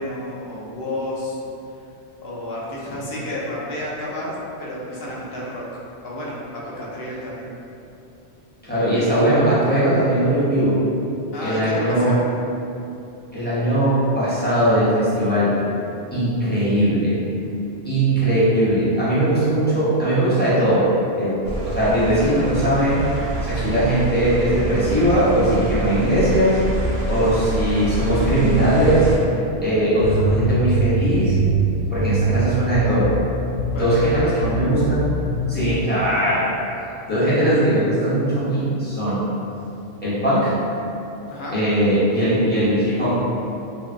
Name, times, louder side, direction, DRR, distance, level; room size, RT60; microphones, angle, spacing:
voice 1, 0.0-1.4 2.2-4.3 4.6-5.7 6.0-7.5 11.3-12.2 17.4-17.6 23.5-23.7 27.0-27.3 33.7-34.5 41.3-41.6, left 1 dB, 60° left, -6 dB, 0.8 m, -31 dB
voice 2, 8.6-10.8 11.4-12.2 13.3-15.6 16.1-17.2 17.8-20.9 21.2-23.0 23.4-26.6 27.0-29.1 29.6-31.3 31.9-33.1 33.7-35.1 35.5-36.5 37.1-39.2 40.0-40.6 41.5-43.2, right 1 dB, 10° left, -12 dB, 0.6 m, -19 dB
sound 1, 21.4-29.2, right 2 dB, 90° right, 0.9 m, -26 dB
sound 2, 30.0-32.4 32.7-33.2 33.5-34.1 34.4-35.5, right 2 dB, 90° left, 1.0 m, -23 dB
2.9 x 2.6 x 2.4 m, 2.8 s
omnidirectional pair, 1.2 m